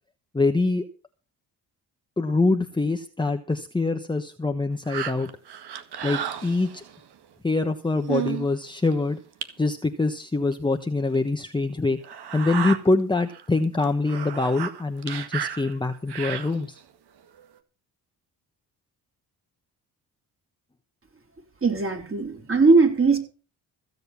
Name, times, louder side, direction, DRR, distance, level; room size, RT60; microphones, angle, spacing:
voice 1, 0.3-0.8 2.2-5.3 6.0-6.8 7.4-9.2 9.6-12.0 12.3-16.8, left 3 dB, 10° left, 5 dB, 1.2 m, -24 dB
sound 1, 4.9-7.0 7.6-7.7 8.0-8.5 8.9-9.0 9.4-9.5 10.5-10.6 11.1-11.2 12.0-12.8 13.3-13.4 13.7-16.8 17.4-17.5, right 9 dB, 75° right, 1.9 m, -32 dB
voice 2, 21.6-23.2, right 4 dB, 30° right, 4 dB, 4.7 m, -19 dB
15.5 x 7.9 x 7.0 m, 0.36 s
cardioid pair, 80°, 40 cm